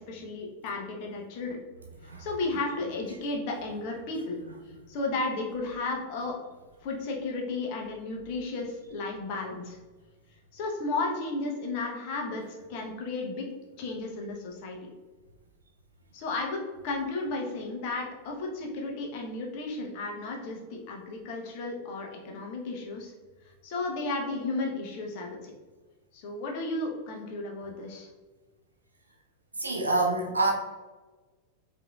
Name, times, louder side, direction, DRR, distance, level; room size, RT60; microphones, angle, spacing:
voice 1, 0.0-1.6 2.0-4.4 4.9-6.4 6.8-9.8 10.5-13.5 13.8-14.8 16.1-23.1 23.6-25.5 26.1-28.1, left 3 dB, 45° left, 0 dB, 0.9 m, -33 dB
voice 2, 29.6-30.5, right 2 dB, 75° right, 0 dB, 0.5 m, -26 dB
4.9 x 2.8 x 2.3 m, 1.3 s
figure-of-eight pair, 90°, 0 cm